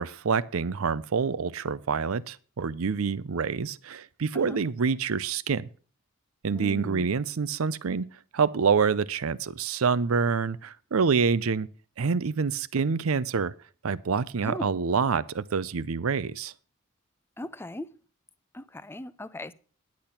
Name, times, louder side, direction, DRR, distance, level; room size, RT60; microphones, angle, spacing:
voice 1, 0.0-5.7 6.4-8.0 8.3-11.7 12.0-13.5 13.8-16.5, right 5 dB, 80° right, 0.6 m, -27 dB
voice 2, 6.5-7.1 14.4-14.8 17.4-17.9 18.5-19.5, left 1 dB, 10° left, 0.4 m, -38 dB
10.5 x 8.6 x 5.7 m
head